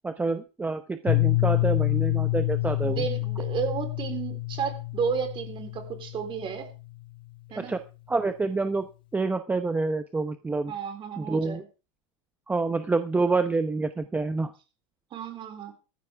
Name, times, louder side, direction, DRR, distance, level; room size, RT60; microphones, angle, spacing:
voice 1, 0.0-3.0 7.7-7.8 8.1-8.9 9.1-10.7 11.2-11.6 12.5-14.5, right 3 dB, 10° right, 9 dB, 0.8 m, -27 dB
Piano, 1.1-6.7, left 19 dB, 30° left, 0.7 m, -27 dB
voice 2, 2.8-6.7 7.5-7.8 10.7-11.7 15.1-15.7, right 7 dB, 30° right, 7 dB, 3.9 m, -32 dB
15.5 x 14.5 x 3.5 m, 0.33 s
supercardioid pair, 135°, 17 cm